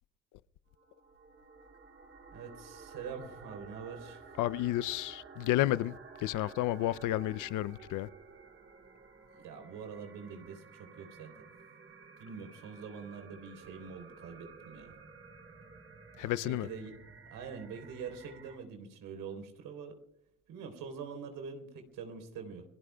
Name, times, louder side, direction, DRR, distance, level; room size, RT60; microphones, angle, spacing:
sound 1, 0.7-18.6, right 4 dB, 40° right, 2.7 m, -53 dB
voice 1, 2.3-4.3 9.3-11.3 12.2-14.9 16.4-16.9 17.3-19.9 20.5-22.6, right 6 dB, 80° right, 3.6 m, -44 dB
voice 2, 4.4-8.1 16.2-16.7, left 15 dB, 70° left, 0.6 m, -31 dB
29.5 x 19.0 x 2.3 m
cardioid pair, 100°, 32 cm